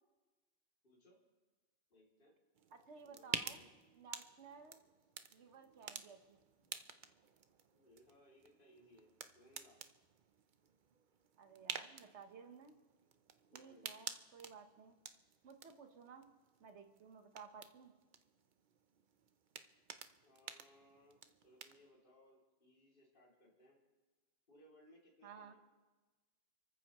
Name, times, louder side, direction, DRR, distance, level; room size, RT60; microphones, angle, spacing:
voice 1, 0.8-1.2 1.9-2.3 3.0-3.7 7.7-9.8 13.5-14.0 20.2-23.8 24.5-25.6, left 1 dB, 45° left, -5 dB, 3.0 m, -66 dB
sound 1, 2.5-21.9, right 6 dB, 50° right, 0.7 m, -51 dB
voice 2, 2.7-3.6 4.0-4.8 5.3-6.4 11.4-12.8 13.5-15.0 15.4-16.3 16.6-17.9 25.2-25.5, right 5 dB, 70° right, 6 dB, 1.4 m, -56 dB
29.5 x 14.0 x 3.1 m, 1.3 s
omnidirectional pair, 1.2 m